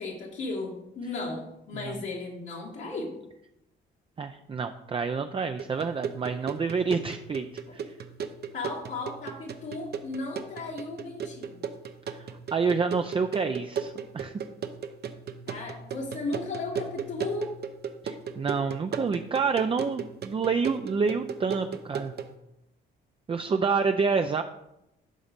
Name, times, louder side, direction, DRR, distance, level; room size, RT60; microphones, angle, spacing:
voice 1, 0.0-3.2 7.7-7.8 8.5-11.6 15.5-17.6, left 3 dB, 70° left, -3 dB, 1.8 m, -35 dB
voice 2, 4.2-7.4 7.7-7.9 12.2-14.3 18.0-22.1 23.3-24.4, right 5 dB, 25° right, 7 dB, 0.5 m, -28 dB
sound 1, 5.6-22.4, right 7 dB, 55° right, 0.8 m, -37 dB
11.0 x 4.0 x 5.2 m, 0.86 s
cardioid pair, 90°, 20 cm